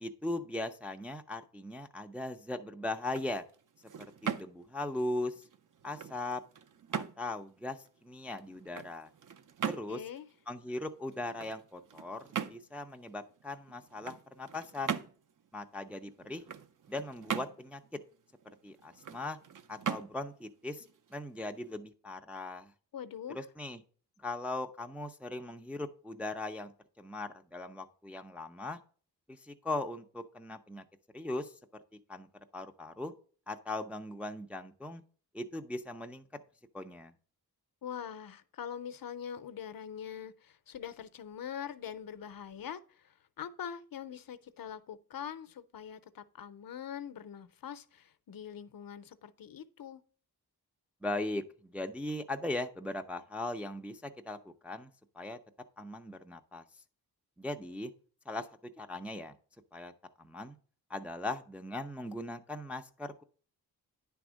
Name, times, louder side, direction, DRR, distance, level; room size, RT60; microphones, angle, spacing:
voice 1, 0.0-3.4 4.0-5.4 5.8-6.4 6.9-9.1 9.7-10.0 10.5-15.0 15.5-16.4 16.9-17.8 18.6-19.4 19.7-20.9 21.1-22.7 23.3-23.8 24.2-26.7 27.0-28.8 29.3-30.8 31.1-31.5 32.1-32.3 32.5-33.1 33.5-35.0 35.3-36.2 36.7-37.1 51.0-54.9 55.2-55.4 55.8-56.6 57.4-57.9 58.3-58.5 58.8-59.3 59.7-59.9 60.2-60.6 60.9-63.2, left 2 dB, 5° right, 0.3 m, -39 dB
sound 1, 2.9-21.8, right 8 dB, 55° right, 0.6 m, -42 dB
voice 2, 9.9-10.2 22.9-23.4 37.8-50.0, left 8 dB, 65° left, 0.6 m, -43 dB
10.0 x 3.5 x 6.1 m
wide cardioid pair, 175°, 37 cm